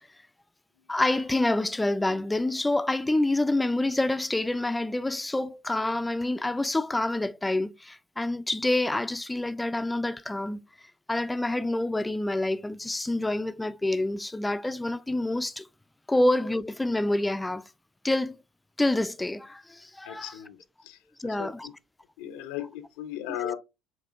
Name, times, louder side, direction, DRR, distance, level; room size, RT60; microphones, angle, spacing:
voice 1, 0.9-10.6 11.1-15.7 16.1-17.6 18.0-18.4 18.8-20.3 21.2-21.7 22.3-22.4 23.4-23.5, left 2 dB, 10° left, 0.4 m, -27 dB
voice 2, 20.0-21.7 22.2-23.6, left 12 dB, 75° left, 0.6 m, -37 dB
7.3 x 2.7 x 2.5 m
hypercardioid pair, 65°, 0 cm